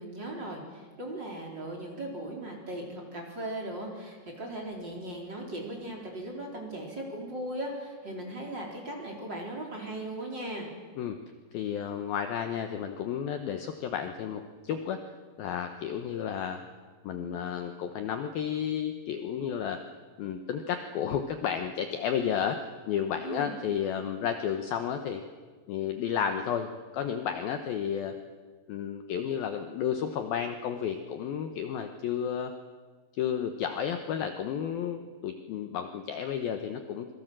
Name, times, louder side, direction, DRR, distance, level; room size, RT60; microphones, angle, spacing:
voice 1, 0.0-10.7 23.2-23.5, right 1 dB, 25° right, -1 dB, 4.0 m, -38 dB
voice 2, 11.5-15.0 15.4-16.6 17.0-19.8 20.2-25.2 25.7-28.1 28.7-32.5 33.2-37.1, left 8 dB, 85° left, 7 dB, 2.1 m, -32 dB
26.5 x 22.0 x 7.6 m, 1.5 s
omnidirectional pair, 5.8 m